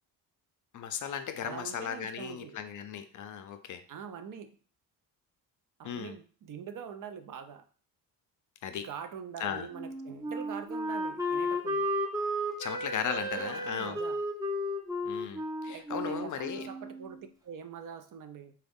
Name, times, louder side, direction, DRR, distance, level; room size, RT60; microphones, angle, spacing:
voice 1, 0.7-3.8 5.8-6.1 8.6-8.9 9.4-9.7 12.6-14.0 15.0-16.7, left 8 dB, 50° left, 8 dB, 0.5 m, -36 dB
voice 2, 1.4-2.6 3.9-4.5 5.8-7.6 8.8-11.9 13.3-14.2 15.7-18.5, right 7 dB, 50° right, 8 dB, 0.5 m, -44 dB
Wind instrument woodwind instrument, 9.7-17.3, equal, 10° right, 0.6 m, -34 dB
3.1 x 2.3 x 3.5 m, 0.41 s
cardioid pair, 75°, 41 cm